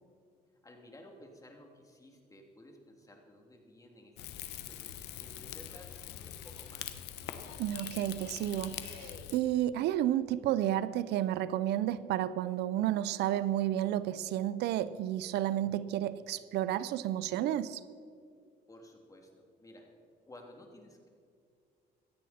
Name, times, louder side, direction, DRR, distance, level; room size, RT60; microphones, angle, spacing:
voice 1, 0.6-7.0 18.7-19.9 20.2-21.1, left 1 dB, 20° left, 2.8 m, -55 dB
Rain / Fire, 4.2-9.4, left 11 dB, 85° left, 1.0 m, -43 dB
voice 2, 7.6-17.8, right 12 dB, 80° right, 0.5 m, -31 dB
17.0 x 13.5 x 4.3 m
cardioid pair, 95°, 17 cm